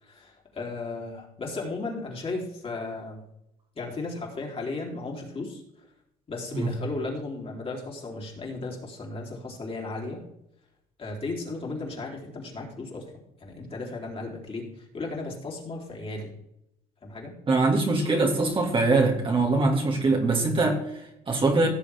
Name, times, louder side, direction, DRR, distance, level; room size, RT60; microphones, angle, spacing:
voice 1, 0.0-3.2 3.8-5.6 6.3-10.2 11.0-13.1 13.4-16.3 17.0-17.3, left 3 dB, 35° left, -2 dB, 3.5 m, -35 dB
voice 2, 17.5-21.7, right 3 dB, 30° right, 0 dB, 2.2 m, -23 dB
16.5 x 7.0 x 3.5 m, 0.80 s
cardioid pair, 110°, 17 cm